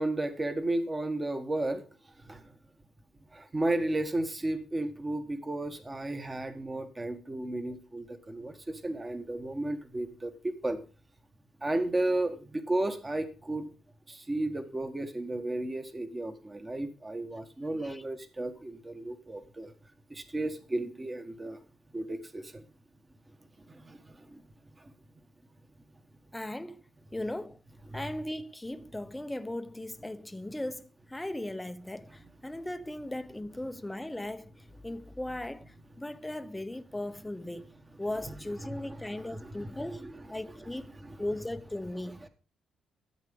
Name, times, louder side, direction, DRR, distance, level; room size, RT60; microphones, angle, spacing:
voice 1, 0.0-1.8 2.2-2.5 3.3-10.8 11.6-13.7 14.1-19.7 20.1-21.6 21.9-22.6 23.7-24.4 24.8-24.9 27.9-28.0 38.6-38.8 39.4-40.1 40.5-40.7 41.0-41.2, right 2 dB, 20° right, 1.4 m, -33 dB
voice 2, 26.3-26.8 27.1-27.6 27.9-37.7 38.0-40.0 40.3-40.9 41.2-42.2, left 1 dB, 10° left, 0.8 m, -38 dB
13.5 x 8.1 x 3.7 m
cardioid pair, 90°, 0 cm